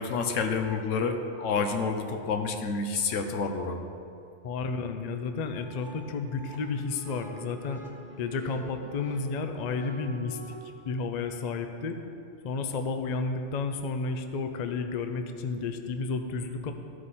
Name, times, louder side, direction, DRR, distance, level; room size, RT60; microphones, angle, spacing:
voice 1, 0.0-3.8, left 4 dB, 85° left, 5 dB, 1.1 m, -29 dB
voice 2, 4.4-7.8 8.2-10.4 10.8-12.0 12.4-16.7, left 4 dB, 50° left, 7 dB, 0.5 m, -32 dB
sound 1, 5.2-10.6, right 1 dB, 45° right, 1.2 m, -47 dB
14.0 x 5.1 x 4.2 m, 2.5 s
omnidirectional pair, 1.2 m